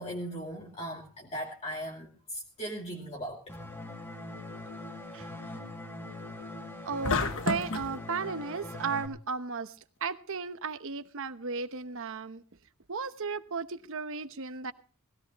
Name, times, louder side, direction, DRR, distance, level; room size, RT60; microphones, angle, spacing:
voice 1, 0.0-3.6, equal, 30° left, -2 dB, 2.5 m, -38 dB
sound 1, 3.5-9.1, left 2 dB, 10° left, 2.4 m, -42 dB
voice 2, 6.8-7.2 7.4-9.7 10.0-12.4 12.9-14.7, right 5 dB, 60° right, 11 dB, 1.0 m, -35 dB
sound 2, 7.0-7.9, left 4 dB, 60° left, 1.2 m, -29 dB
19.5 x 17.0 x 3.0 m, 0.37 s
head